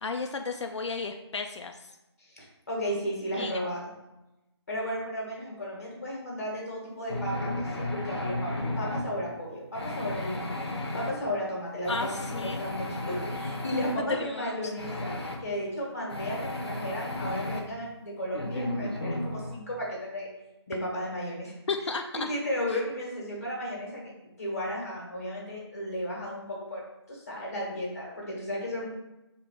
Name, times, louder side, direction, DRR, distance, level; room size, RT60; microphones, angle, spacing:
voice 1, 0.0-1.9 3.3-3.6 11.9-12.6 14.1-14.7 21.7-22.3 22.7-22.8, left 4 dB, 85° left, 5 dB, 0.4 m, -33 dB
voice 2, 2.2-3.9 4.7-10.6 10.9-12.1 12.4-15.2 15.4-20.3 20.7-21.5 22.1-24.1 24.4-28.9, equal, 35° left, -3 dB, 1.4 m, -34 dB
sound 1, 7.1-9.1 9.7-11.1 11.9-14.0 14.8-15.4 16.1-17.6 18.3-19.6, left 1 dB, 65° left, 0.9 m, -33 dB
3.7 x 2.9 x 4.8 m, 0.98 s
figure-of-eight pair, 180°, 15 cm